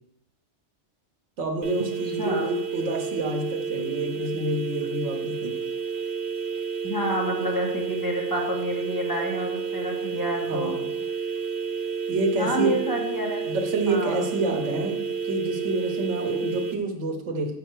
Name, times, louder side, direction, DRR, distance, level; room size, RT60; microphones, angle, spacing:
voice 1, 1.4-5.6 10.5-10.9 12.1-12.8 13.4-17.5, right 2 dB, 80° right, 3 dB, 1.3 m, -28 dB
sound 1, 1.6-16.7, right 6 dB, 55° right, 0.7 m, -30 dB
voice 2, 6.8-10.8 12.4-13.4 13.9-14.3, equal, 15° left, -3 dB, 1.4 m, -29 dB
5.7 x 5.6 x 4.5 m, 0.78 s
omnidirectional pair, 1.2 m